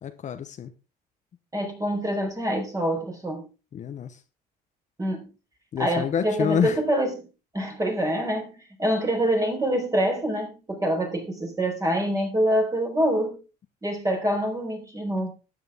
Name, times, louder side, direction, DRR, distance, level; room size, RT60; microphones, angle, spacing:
voice 1, 0.0-0.7 3.7-4.2 5.7-6.8, left 8 dB, 45° left, 1.0 m, -27 dB
voice 2, 1.5-3.5 5.0-5.2 5.8-7.2 7.5-13.4 13.8-15.3, equal, 20° right, 4.5 m, -25 dB
12.5 x 8.9 x 3.6 m
cardioid pair, 110°, 17 cm